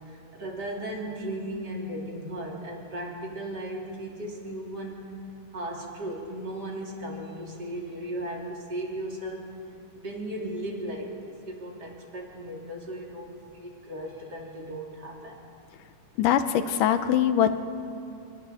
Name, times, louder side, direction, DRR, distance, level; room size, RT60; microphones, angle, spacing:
voice 1, 0.1-5.1 5.5-9.5 9.9-15.5, right 1 dB, 30° right, -2 dB, 3.3 m, -36 dB
voice 2, 16.2-17.6, left 10 dB, 80° left, 10 dB, 2.4 m, -22 dB
29.5 x 21.0 x 4.3 m, 2.5 s
omnidirectional pair, 3.8 m